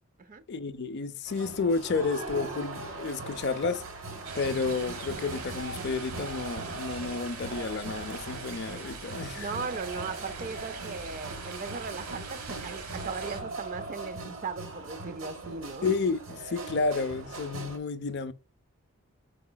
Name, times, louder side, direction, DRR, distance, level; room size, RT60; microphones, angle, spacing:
voice 1, 0.5-3.8 4.3-9.5 15.8-18.3, left 4 dB, 50° left, 0.4 m, -31 dB
sound 1, 1.3-17.8, right 2 dB, 60° right, 1.0 m, -40 dB
sound 2, 4.2-13.4, right 4 dB, 85° right, 0.9 m, -42 dB
voice 2, 9.4-15.9, right 4 dB, 35° right, 0.4 m, -38 dB
4.8 x 4.8 x 2.2 m
head